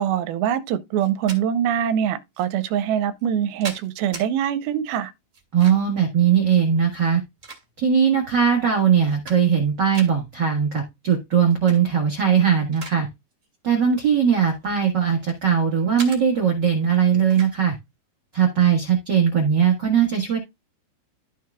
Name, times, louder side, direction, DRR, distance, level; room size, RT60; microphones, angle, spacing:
voice 1, 0.0-5.1, right 9 dB, 90° right, 2.6 m, -23 dB
sound 1, 1.0-1.4 2.3-2.5 3.2-4.3 5.3-6.0 6.9-8.0 8.6-8.7 9.0-9.6 9.9-10.1 11.5-11.8 12.2-13.0 13.3-13.6 14.3-15.4 16.0-16.2 17.3-17.5, right 3 dB, 25° right, 2.3 m, -39 dB
voice 2, 5.5-7.2 7.8-13.1 13.6-17.7 18.3-20.4, right 7 dB, 55° right, 1.1 m, -19 dB
13.5 x 4.6 x 2.3 m
omnidirectional pair, 4.4 m